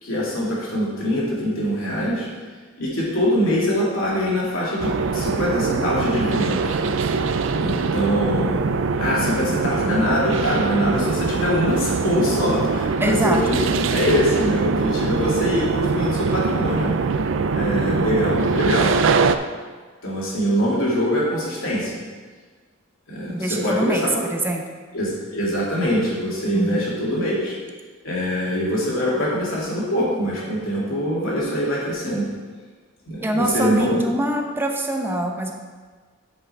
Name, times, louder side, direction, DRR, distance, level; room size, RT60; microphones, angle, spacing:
voice 1, 0.0-2.3 2.8-6.8 7.6-8.6 9.0-16.9 17.5-18.9 20.0-22.0 23.1-24.1 24.9-27.6 28.0-32.3 33.1-34.0, equal, 80° left, -5 dB, 2.6 m, -23 dB
sound 1, 4.8-19.4, right 4 dB, 65° right, 0.4 m, -23 dB
voice 2, 13.0-13.4 23.3-24.6 26.5-26.8 33.2-35.5, right 1 dB, 10° right, 2 dB, 0.7 m, -24 dB
8.3 x 5.9 x 4.5 m, 1.5 s
head